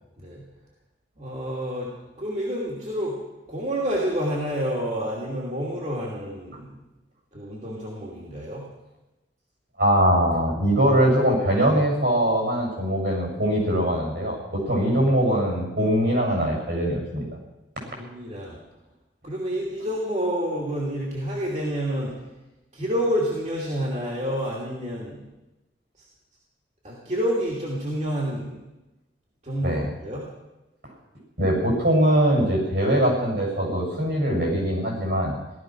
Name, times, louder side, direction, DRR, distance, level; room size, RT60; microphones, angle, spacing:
voice 1, 1.2-1.9 2.2-3.2 3.5-6.7 7.3-8.6 18.0-18.6 19.2-22.1 22.7-25.2 26.0-26.1 26.8-28.6 29.4-30.2, equal, 40° right, -4 dB, 2.9 m, -28 dB
voice 2, 9.8-17.3 29.6-29.9 31.4-35.4, equal, 65° right, -1 dB, 7.4 m, -22 dB
17.0 x 13.5 x 6.2 m, 1.0 s
head